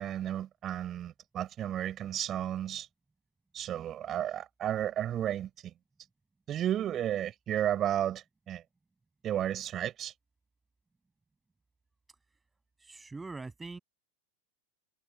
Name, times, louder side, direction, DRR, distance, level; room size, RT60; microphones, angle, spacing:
voice 1, 0.0-2.9 3.5-5.7 6.5-8.6 9.2-10.1, right 11 dB, 30° right, 4.2 m, -33 dB
voice 2, 12.8-13.8, right 3 dB, 10° right, 6.5 m, -42 dB
figure-of-eight pair, 90°, 0 cm